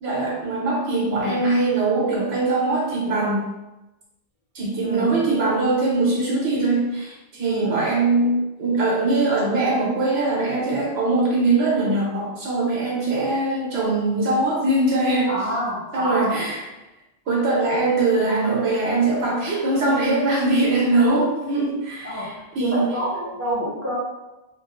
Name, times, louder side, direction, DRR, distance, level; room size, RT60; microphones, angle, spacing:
voice 1, 0.0-3.5 4.5-15.3 15.9-16.6 17.3-22.9, right 2 dB, 85° right, -3 dB, 1.2 m, -22 dB
voice 2, 1.0-1.4 4.8-5.2 7.4-7.8 15.3-16.4 22.0-23.9, equal, 15° right, -6 dB, 0.7 m, -28 dB
3.1 x 2.0 x 3.5 m, 1.0 s
omnidirectional pair, 1.0 m